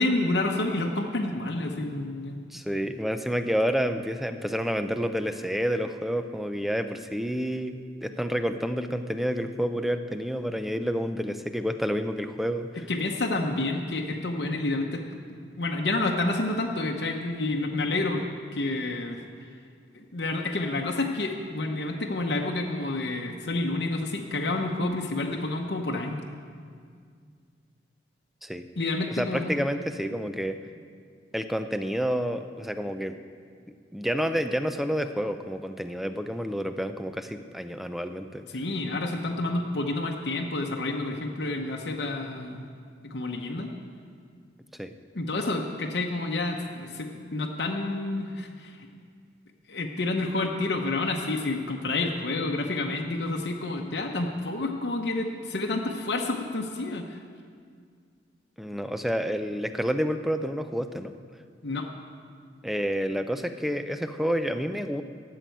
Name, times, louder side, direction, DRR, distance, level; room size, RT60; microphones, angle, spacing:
voice 1, 0.0-2.4 12.9-15.0 15.6-18.2 18.5-19.2 19.9-26.2 28.8-29.5 38.5-42.7 43.1-43.7 45.1-48.9 49.7-57.2 61.6-61.9, left 2 dB, 70° left, 0 dB, 0.9 m, -29 dB
voice 2, 2.5-12.9 28.4-28.7 29.1-30.6 31.3-33.2 33.9-38.4 44.8-44.9 58.6-61.1 62.6-65.0, equal, ahead, 8 dB, 0.5 m, -29 dB
12.5 x 7.6 x 9.2 m, 2.1 s
head